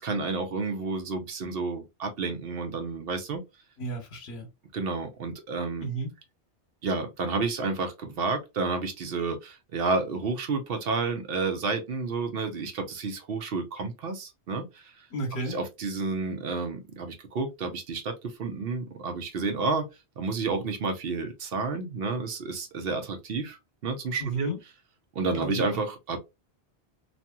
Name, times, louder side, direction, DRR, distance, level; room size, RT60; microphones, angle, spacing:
voice 1, 0.0-3.4 4.7-5.9 6.8-15.1 15.5-19.9 20.2-23.6 23.8-24.5 25.1-26.2, right 4 dB, 65° right, 0.8 m, -30 dB
voice 2, 3.8-4.5 5.8-6.1 15.1-15.6 24.2-24.6 25.3-25.8, right 2 dB, 70° left, 1.1 m, -32 dB
2.7 x 2.5 x 2.2 m
omnidirectional pair, 1.1 m